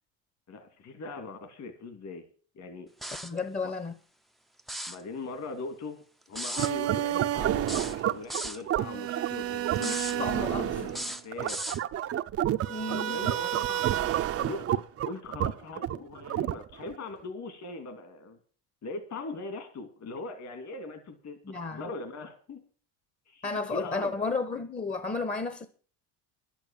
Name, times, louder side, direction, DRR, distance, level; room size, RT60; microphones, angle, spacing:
voice 1, 0.5-2.2 2.6-2.9 3.6-3.7 4.9-6.0 6.3-11.6 12.9-18.4 18.8-22.6 23.3-24.1, left 3 dB, 45° left, 2.5 m, -40 dB
sound 1, 3.0-3.4 4.6-5.0 6.4-6.7 7.7-8.6 9.8-10.2 10.9-11.8, right 1 dB, ahead, 0.6 m, -36 dB
voice 2, 3.2-3.9 9.8-10.7 12.7-13.2 21.4-21.9 23.4-25.7, left 3 dB, 20° left, 1.1 m, -33 dB
sound 2, 6.6-17.0, right 12 dB, 40° right, 0.7 m, -29 dB
11.5 x 8.9 x 7.3 m
supercardioid pair, 110°, 37 cm